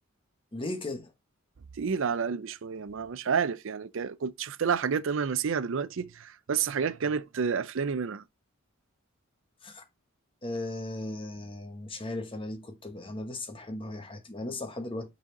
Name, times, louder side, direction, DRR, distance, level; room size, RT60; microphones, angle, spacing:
voice 1, 0.5-1.1 9.6-9.8 10.4-15.1, left 2 dB, 25° left, 1.2 m, -37 dB
voice 2, 1.8-8.2, right 6 dB, 65° right, 0.5 m, -30 dB
6.1 x 4.2 x 3.9 m
head